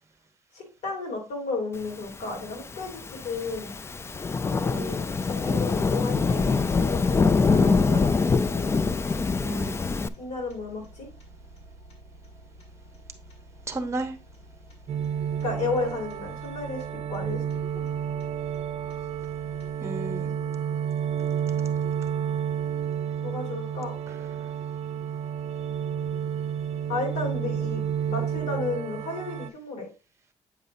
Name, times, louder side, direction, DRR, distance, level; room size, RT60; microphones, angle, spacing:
voice 1, 0.5-3.7 4.6-8.7 10.2-11.1 15.4-16.8 17.1-17.4 17.7-17.8 23.2-23.9 26.9-29.9, left 3 dB, 75° left, 3.0 m, -33 dB
Thunderstorm / Rain, 2.4-10.1, left 4 dB, 20° left, 0.3 m, -24 dB
voice 2, 4.7-5.0 7.5-8.0 9.4-9.9 13.7-14.2 19.8-20.3 24.1-24.2, right 2 dB, 25° right, 1.0 m, -33 dB
sound 1, 7.7-19.7, right 1 dB, 60° left, 2.3 m, -50 dB
sound 2, 14.9-29.5, right 8 dB, 60° right, 0.6 m, -30 dB
8.0 x 5.3 x 2.7 m
cardioid pair, 115°, 12 cm